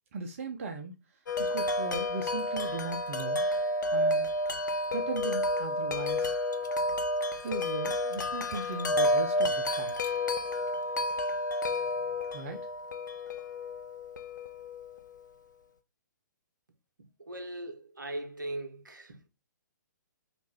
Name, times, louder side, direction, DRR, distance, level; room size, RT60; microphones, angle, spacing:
voice 1, 0.1-1.0 1.4-3.4 3.9-4.3 4.9-6.3 7.4-9.9 12.3-12.7, right 4 dB, 45° right, 0.6 m, -37 dB
Wind chime, 1.3-15.2, left 1 dB, 70° left, 0.5 m, -30 dB
voice 2, 17.2-19.3, right 1 dB, 80° right, 0.7 m, -39 dB
3.2 x 2.5 x 3.4 m
figure-of-eight pair, 125°, 10 cm